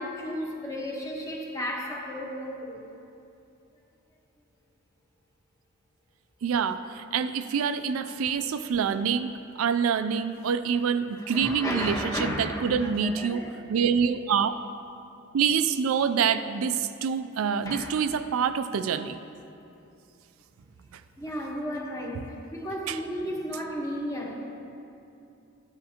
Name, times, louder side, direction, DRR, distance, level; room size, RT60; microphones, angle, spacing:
voice 1, 0.0-2.8 11.2-13.5 17.7-17.9 21.2-24.3, equal, 15° left, -2 dB, 1.2 m, -34 dB
voice 2, 6.4-13.4 13.7-14.5 15.3-19.2 20.9-21.0 22.9-23.0, right 6 dB, 80° right, 11 dB, 0.4 m, -26 dB
13.0 x 9.8 x 2.9 m, 2.7 s
head